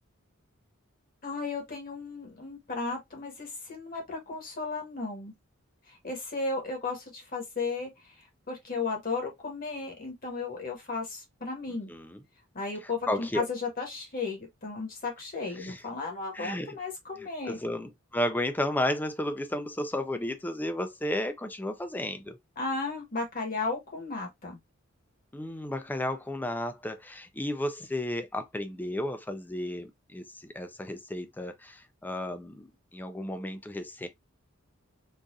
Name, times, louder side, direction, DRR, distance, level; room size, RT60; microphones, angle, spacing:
voice 1, 1.2-5.3 5.9-11.9 12.5-17.6 22.6-24.6, left 3 dB, 40° left, 1.3 m, -35 dB
voice 2, 11.9-12.2 13.1-13.4 15.6-15.8 16.3-16.8 17.5-22.4 25.3-34.1, left 1 dB, 10° left, 0.4 m, -33 dB
3.9 x 2.4 x 2.5 m
head